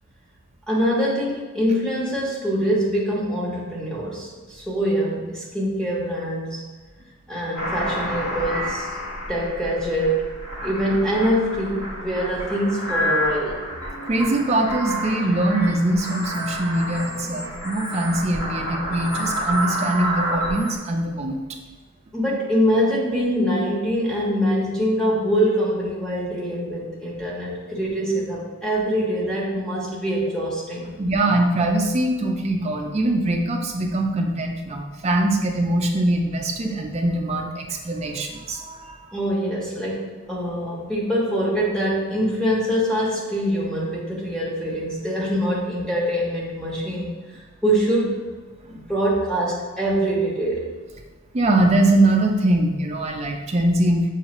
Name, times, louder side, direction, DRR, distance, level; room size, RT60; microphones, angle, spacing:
voice 1, 0.7-6.6 7.3-8.9 9.3-10.4 10.6-13.6 22.1-30.9 39.1-48.2 48.6-50.7, equal, 5° left, -6 dB, 0.9 m, -24 dB
sound 1, 7.5-20.8, equal, 65° left, 1.4 m, -29 dB
voice 2, 14.1-21.4 31.0-39.2 51.3-54.1, right 1 dB, 30° right, 2 dB, 0.4 m, -22 dB
6.2 x 2.4 x 3.0 m, 1.3 s
head